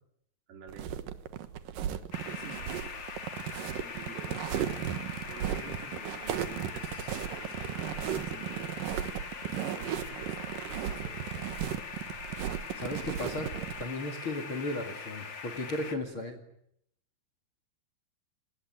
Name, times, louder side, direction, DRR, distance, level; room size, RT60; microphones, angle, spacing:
voice 1, 0.5-0.9 2.3-2.9 3.8-4.5 5.3-8.9 9.4-10.4 10.6-11.4, right 6 dB, 85° right, 5 dB, 6.2 m, -49 dB
sound 1, 0.7-13.8, right 10 dB, 70° right, 2.2 m, -35 dB
sound 2, 2.1-15.9, left 5 dB, 55° left, 1.2 m, -42 dB
voice 2, 12.7-13.5 13.8-16.4, left 2 dB, 35° left, 7 dB, 2.2 m, -35 dB
29.5 x 20.0 x 9.5 m, 0.74 s
omnidirectional pair, 5.7 m